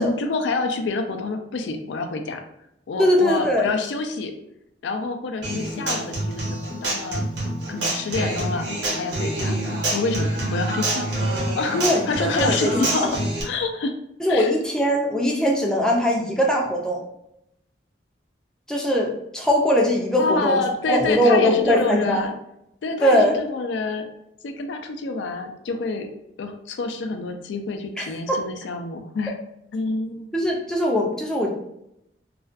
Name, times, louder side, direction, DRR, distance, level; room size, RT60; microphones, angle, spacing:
voice 1, 0.0-2.4 2.9-4.3 4.8-7.2 7.7-8.7 9.0-9.6 9.9-11.1 11.6-13.9 14.3-14.5 20.2-22.3 22.8-24.0 24.4-26.1 26.4-29.4 29.7-30.3, left 3 dB, 80° left, 6 dB, 0.4 m, -27 dB
voice 2, 3.0-3.7 11.8-13.2 14.2-17.0 18.7-20.6 20.9-22.2 23.0-23.4 28.0-28.4 30.3-31.5, equal, 5° left, -1 dB, 0.3 m, -21 dB
Human voice / Acoustic guitar, 5.4-13.4, right 1 dB, 75° right, 0.9 m, -26 dB
2.4 x 2.1 x 2.4 m, 0.80 s
head